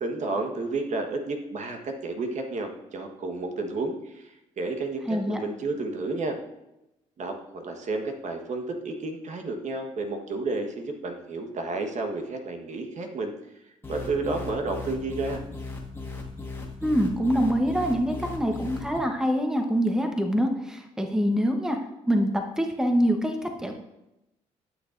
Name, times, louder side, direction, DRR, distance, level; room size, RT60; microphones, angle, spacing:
voice 1, 0.0-4.3 4.6-6.4 7.2-13.3 13.9-15.4, right 3 dB, 55° right, 4 dB, 1.3 m, -31 dB
voice 2, 5.1-5.4 16.8-21.8 22.1-23.7, equal, 5° right, 4 dB, 1.0 m, -25 dB
sound 1, 13.8-19.0, left 3 dB, 15° left, 1.8 m, -37 dB
11.5 x 6.4 x 2.6 m, 0.90 s
supercardioid pair, 65°, 14 cm